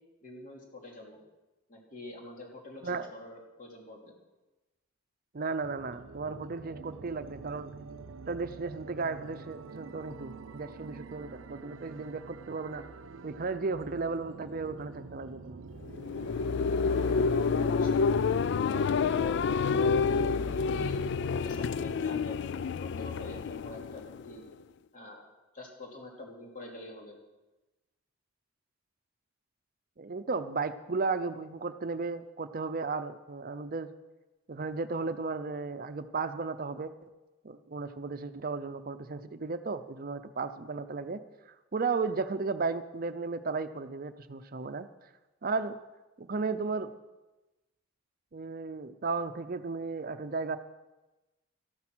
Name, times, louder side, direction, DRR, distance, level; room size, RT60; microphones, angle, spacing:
voice 1, 0.2-1.2 1.7-4.1 16.8-18.0 18.7-21.0 21.4-24.4 24.9-25.3 25.5-27.2, left 2 dB, 45° left, 0 dB, 3.0 m, -45 dB
voice 2, 5.3-7.7 8.3-12.9 13.2-15.6 30.0-33.9 34.5-36.9 37.4-41.2 41.7-44.9 45.4-45.8 46.2-46.9 48.3-50.6, right 4 dB, 45° right, 10 dB, 0.6 m, -34 dB
sound 1, 5.6-18.1, right 4 dB, 85° right, 0.6 m, -47 dB
sound 2, 15.8-24.5, left 5 dB, 60° left, 0.3 m, -28 dB
13.5 x 12.0 x 6.2 m, 1.1 s
head